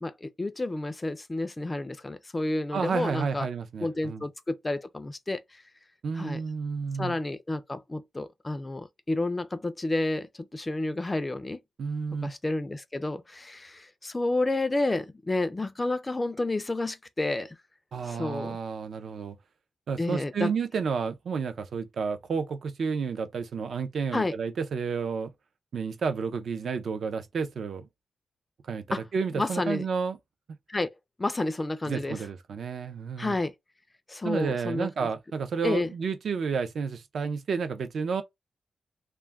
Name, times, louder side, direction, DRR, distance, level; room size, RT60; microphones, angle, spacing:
voice 1, 0.0-3.5 3.8-5.6 6.2-6.4 7.0-11.6 12.2-17.6 18.0-18.6 20.0-20.5 24.1-24.3 28.9-29.0 29.3-29.8 30.7-30.9 31.2-32.2 33.2-33.5 34.1-35.1 35.6-35.9, left 2 dB, 20° left, 0.3 m, -30 dB
voice 2, 2.7-4.2 6.0-7.2 11.8-12.3 17.9-19.4 19.9-25.3 25.7-27.9 28.6-30.2 31.9-33.3 34.2-38.2, right 5 dB, 60° right, 0.4 m, -31 dB
2.2 x 2.1 x 3.3 m
wide cardioid pair, 140°, 0 cm